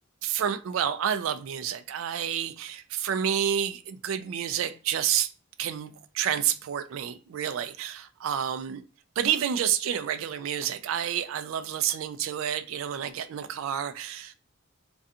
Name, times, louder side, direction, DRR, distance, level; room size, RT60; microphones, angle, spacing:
voice 1, 0.2-5.3 5.6-8.8 9.2-14.3, right 9 dB, 75° right, 0.3 m, -29 dB
2.4 x 2.2 x 2.6 m
head